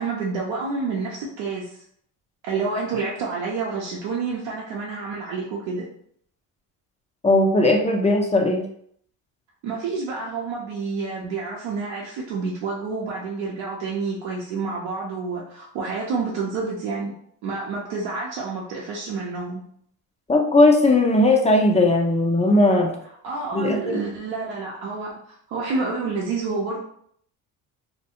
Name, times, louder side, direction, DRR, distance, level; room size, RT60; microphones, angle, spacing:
voice 1, 0.0-1.8 2.4-5.9 9.6-17.1 17.4-19.6 23.2-25.1 25.5-26.8, right 4 dB, 70° right, -3 dB, 0.7 m, -29 dB
voice 2, 7.2-8.7 20.3-22.9 23.5-24.0, left 2 dB, 15° left, 2 dB, 0.4 m, -18 dB
2.3 x 2.1 x 2.8 m, 0.66 s
hypercardioid pair, 60°, 46 cm